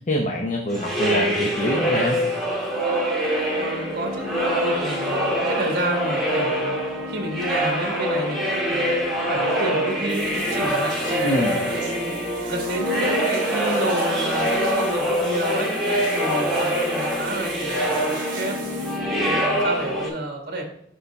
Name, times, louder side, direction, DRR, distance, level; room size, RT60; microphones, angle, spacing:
voice 1, 0.0-2.2 11.2-11.6, equal, 40° left, 1 dB, 0.7 m, -25 dB
sound 1, 0.7-20.1, equal, ahead, 1.7 m, -24 dB
voice 2, 3.5-4.3 4.6-6.8 7.1-11.2 11.6-15.7 16.1-18.6 19.1-20.6, right 1 dB, 55° right, 2 dB, 1.5 m, -30 dB
ducha larga, 10.1-19.0, right 3 dB, 25° right, 1.8 m, -40 dB
6.9 x 5.5 x 3.5 m, 0.69 s
head